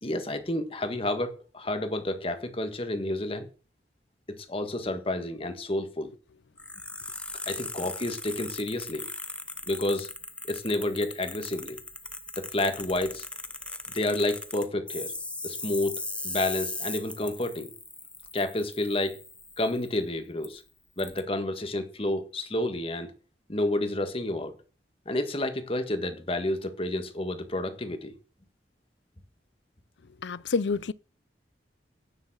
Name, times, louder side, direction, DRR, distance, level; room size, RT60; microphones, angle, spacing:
voice 1, 0.0-3.5 4.3-6.1 7.5-9.1 9.7-10.1 10.5-11.8 12.4-13.3 13.9-15.1 15.4-17.7 18.3-19.2 19.6-20.6 21.0-23.1 23.5-24.6 25.1-28.1, left 1 dB, 30° left, 1.6 m, -30 dB
sound 1, 6.6-20.0 20.4-20.5 21.0-21.2, left 2 dB, 5° left, 0.9 m, -39 dB
voice 2, 30.2-30.9, left 4 dB, 85° left, 0.5 m, -28 dB
9.9 x 7.3 x 7.6 m
head